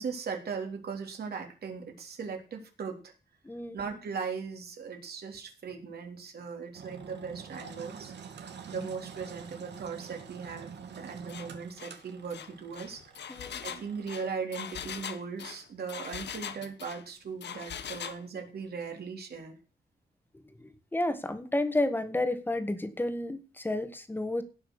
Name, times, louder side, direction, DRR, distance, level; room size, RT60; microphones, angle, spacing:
voice 1, 0.0-3.1 3.7-8.1 8.7-13.3 13.6-19.6, right 5 dB, 65° right, 3 dB, 3.6 m, -38 dB
voice 2, 3.4-3.8 13.3-13.6 20.6-24.4, left 1 dB, 10° left, 9 dB, 1.6 m, -31 dB
Engine, 6.7-14.3, right 6 dB, 90° right, 2.3 m, -47 dB
Engine 2, 11.3-11.5 11.8-12.0 12.3-17.0 17.4-18.2, left 8 dB, 85° left, 1.3 m, -41 dB
17.5 x 6.5 x 6.5 m, 0.34 s
wide cardioid pair, 180°, 17 cm